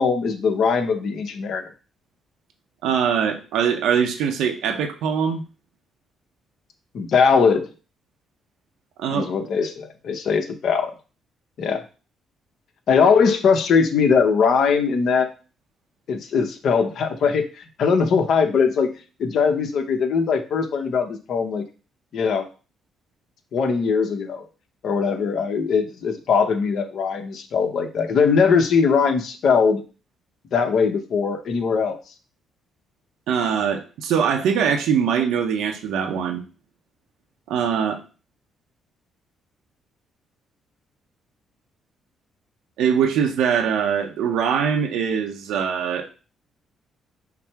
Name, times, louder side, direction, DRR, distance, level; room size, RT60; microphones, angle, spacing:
voice 1, 0.0-1.6 6.9-7.7 9.1-10.9 11.6-11.8 12.9-15.3 16.1-18.9 19.2-21.6 22.1-22.5 23.5-24.4 24.8-29.8 30.5-32.0, left 5 dB, 65° left, 6 dB, 0.8 m, -20 dB
voice 2, 2.8-5.4 9.0-9.3 33.3-36.4 37.5-38.0 42.8-46.1, right 7 dB, 85° right, 4 dB, 0.6 m, -22 dB
5.8 x 2.0 x 4.5 m, 0.34 s
cardioid pair, 90°, 0 cm